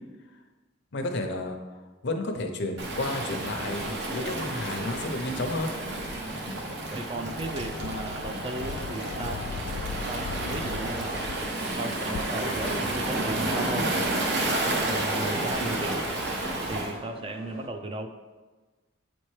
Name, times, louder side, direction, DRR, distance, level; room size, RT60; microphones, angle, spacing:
voice 1, 0.9-1.6 2.0-5.7, left 2 dB, 60° left, 5 dB, 0.6 m, -31 dB
Waves surf, 2.8-16.9, right 1 dB, 60° right, 0.9 m, -31 dB
voice 2, 6.9-9.5 10.1-11.2 11.8-14.0 14.5-16.1 16.7-18.1, right 2 dB, 30° right, 6 dB, 0.4 m, -35 dB
sound 1, 7.1-17.7, right 1 dB, 80° right, 0.7 m, -44 dB
sound 2, 7.4-11.5 12.1-12.2, left 5 dB, 90° left, 0.3 m, -38 dB
8.1 x 4.4 x 3.2 m, 1.3 s
head